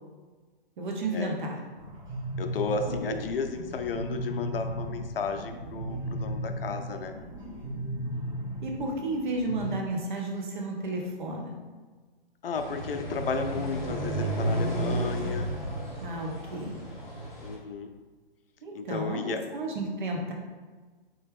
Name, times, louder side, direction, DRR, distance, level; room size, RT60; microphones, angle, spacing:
voice 1, 0.8-1.6 3.1-3.2 8.6-11.5 16.0-16.8 18.6-20.3, right 2 dB, 50° right, 0 dB, 0.9 m, -32 dB
sound 1, 1.8-9.7, right 1 dB, 10° right, 0.9 m, -36 dB
voice 2, 2.4-7.1 12.4-15.5 17.4-17.9 18.7-19.4, left 4 dB, 65° left, 6 dB, 0.5 m, -33 dB
sound 2, 12.5-17.5, right 1 dB, 10° left, 0.5 m, -32 dB
3.4 x 2.8 x 3.6 m, 1.3 s
hypercardioid pair, 145°, 30 cm